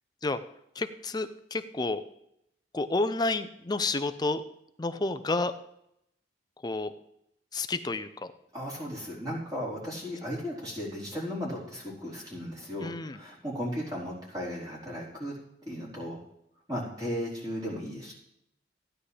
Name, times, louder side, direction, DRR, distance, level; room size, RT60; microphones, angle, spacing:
voice 1, 0.8-2.0 2.7-4.4 4.8-5.5 6.6-6.9 7.5-8.1 12.8-13.2, left 3 dB, 20° left, 11 dB, 0.5 m, -30 dB
voice 2, 8.5-15.3 15.7-16.2 16.7-18.1, equal, 20° right, -6 dB, 4.2 m, -36 dB
15.0 x 9.8 x 3.4 m, 0.79 s
head